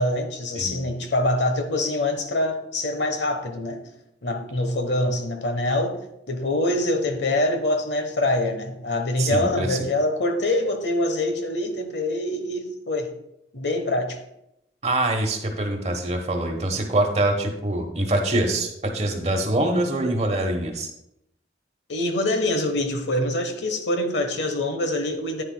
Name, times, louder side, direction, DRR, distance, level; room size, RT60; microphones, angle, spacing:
voice 1, 0.0-3.8 4.2-6.0 6.3-13.1 13.5-14.2 21.9-25.4, left 1 dB, 85° left, 1.1 m, -25 dB
voice 2, 9.2-9.8 14.8-20.9, right 1 dB, 35° right, 1.1 m, -24 dB
10.0 x 9.0 x 2.2 m
head